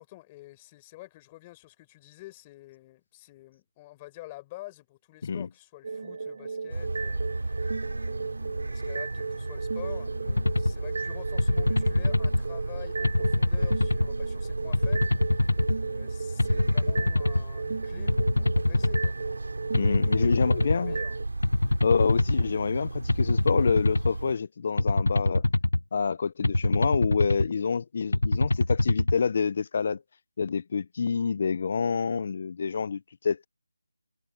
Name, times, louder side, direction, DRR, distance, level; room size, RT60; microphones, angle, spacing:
voice 1, 0.0-15.6 15.9-19.7 20.1-21.2 21.7-21.8, left 18 dB, 15° left, 5.1 m, -48 dB
sound 1, 5.8-21.3, right 4 dB, 45° right, 0.6 m, -36 dB
sound 2, 6.7-24.4, right 2 dB, 85° right, 3.5 m, -35 dB
sound 3, 10.3-10.7 11.4-12.4 13.0-14.1 14.7-15.8 16.4-17.4 18.1-19.1 19.7-20.8 21.4-22.5 23.1-24.1 24.8-25.8 26.4-27.5 28.1-29.2, left 2 dB, 85° left, 0.9 m, -24 dB
voice 2, 19.7-21.0 21.8-25.4 25.9-30.0 30.4-33.5, left 5 dB, 35° left, 0.6 m, -27 dB
figure-of-eight pair, 170°, 0 cm